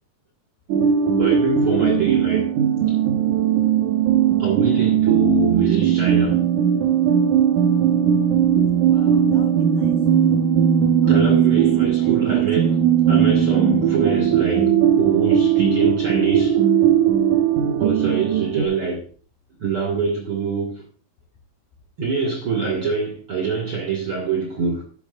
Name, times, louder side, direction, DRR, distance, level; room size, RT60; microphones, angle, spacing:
sound 1, 0.7-18.6, right 8 dB, 70° right, 1.9 m, -18 dB
voice 1, 1.2-2.5 2.9-3.0 4.4-6.4 11.1-16.6 17.8-19.1 19.6-20.8 22.0-24.8, right 4 dB, 50° right, 1.6 m, -25 dB
voice 2, 8.8-10.4 11.0-11.3 12.0-12.8, left 5 dB, 85° left, 4.0 m, -45 dB
12.0 x 10.5 x 2.5 m
omnidirectional pair, 4.7 m